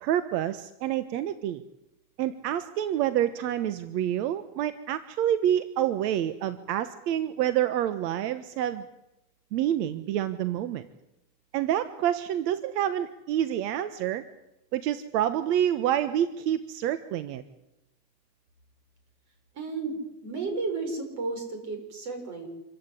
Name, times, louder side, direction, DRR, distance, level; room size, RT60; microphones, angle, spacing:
voice 1, 0.0-1.6 2.2-8.8 9.5-10.9 11.5-14.2 14.7-17.4, right 11 dB, 70° right, 13 dB, 1.4 m, -27 dB
voice 2, 19.5-20.0 20.2-22.5, right 3 dB, 35° right, 5 dB, 6.5 m, -33 dB
26.5 x 15.0 x 9.9 m, 0.91 s
supercardioid pair, 170°, 49 cm